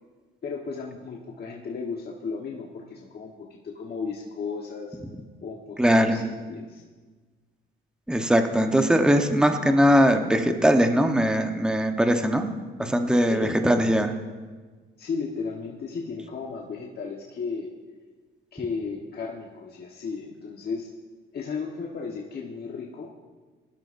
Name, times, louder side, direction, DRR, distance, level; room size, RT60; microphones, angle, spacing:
voice 1, 0.4-5.0 5.4-6.8 13.3-13.6 15.0-17.7 18.5-20.9 21.3-23.1, left 5 dB, 55° left, -1 dB, 1.3 m, -34 dB
voice 2, 5.8-6.2 8.1-12.4 12.8-14.1, equal, 5° right, 5 dB, 1.0 m, -20 dB
20.0 x 12.0 x 2.6 m, 1.4 s
cardioid pair, 90°, 20 cm